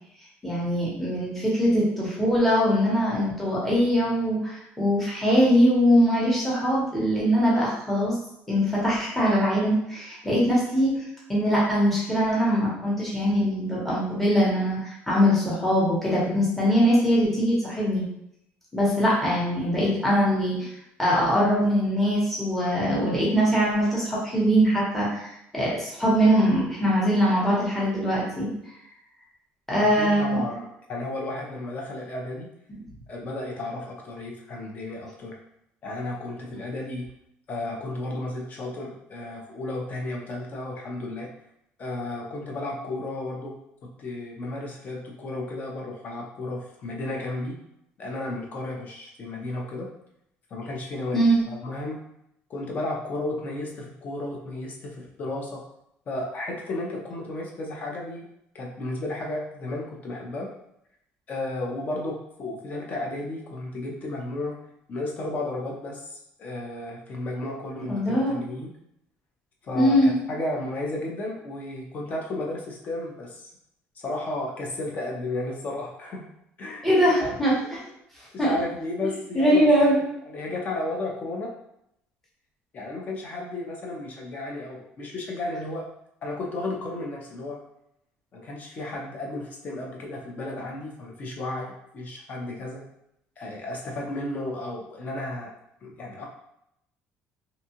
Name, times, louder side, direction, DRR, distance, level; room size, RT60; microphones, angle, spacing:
voice 1, 0.4-8.2 8.5-11.0 11.3-18.0 18.7-20.7 21.0-25.3 25.5-28.5 29.7-30.4 51.1-51.4 67.9-68.4 69.7-70.2 76.8-77.6 78.4-78.5 79.3-80.0, equal, 5° left, -7 dB, 1.0 m, -22 dB
voice 2, 29.8-32.5 33.1-35.3 35.8-37.1 37.5-41.3 41.8-43.6 44.0-47.6 48.0-49.9 50.5-52.0 52.5-55.6 56.1-58.3 58.5-60.5 61.3-64.6 64.9-68.7 69.6-70.0 70.3-73.5 74.0-76.3 76.6-76.9 77.2-77.3 78.5-79.7 80.3-81.5 82.7-85.8 86.2-87.6 88.3-92.8 93.4-95.5 95.8-96.3, left 2 dB, 35° left, 0 dB, 0.7 m, -33 dB
2.7 x 2.3 x 2.8 m, 0.78 s
cardioid pair, 135°, 5 cm